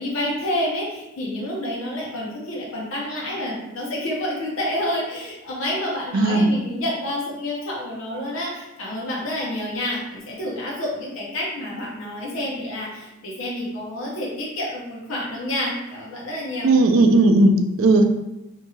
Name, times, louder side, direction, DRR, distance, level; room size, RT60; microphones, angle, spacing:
voice 1, 0.0-16.7, left 1 dB, 75° left, -4 dB, 0.7 m, -29 dB
voice 2, 6.1-6.5 16.6-18.0, right 2 dB, 85° right, 5 dB, 0.4 m, -16 dB
2.6 x 2.3 x 3.0 m, 0.95 s
head